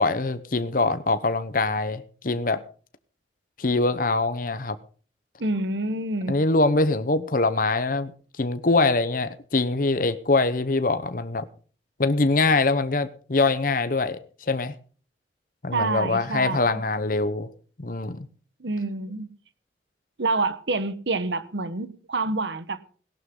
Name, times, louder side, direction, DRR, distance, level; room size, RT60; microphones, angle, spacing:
voice 1, 0.0-2.6 3.6-4.8 6.3-8.1 8.4-11.5 12.0-14.2 14.5-14.7 15.6-17.5 17.8-18.3, left 3 dB, 50° left, 0.9 m, -23 dB
voice 2, 5.4-6.4 15.7-16.8 18.6-19.3 20.2-22.8, right 3 dB, 85° right, 1.2 m, -27 dB
17.5 x 11.5 x 3.8 m
head